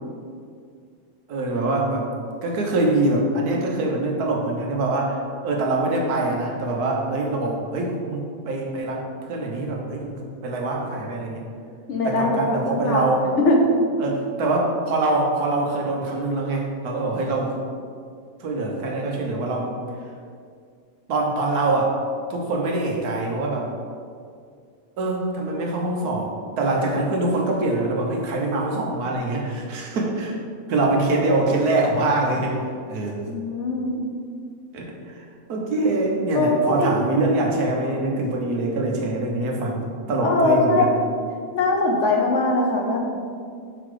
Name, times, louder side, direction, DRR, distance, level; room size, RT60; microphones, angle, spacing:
voice 1, 1.3-2.0 2.4-9.0 9.3-11.4 12.0-13.3 14.0-17.6 18.4-19.7 21.1-21.9 22.3-23.7 25.0-26.3 26.6-30.4 30.7-32.6 32.9-33.3 34.7-35.2 35.5-40.9, right 2 dB, 90° right, 0 dB, 1.4 m, -24 dB
voice 2, 11.9-13.6 33.3-34.1 36.3-36.9 40.2-40.8 41.5-43.0, left 2 dB, 60° left, 0 dB, 1.0 m, -21 dB
5.7 x 4.0 x 4.8 m, 2.2 s
omnidirectional pair, 1.6 m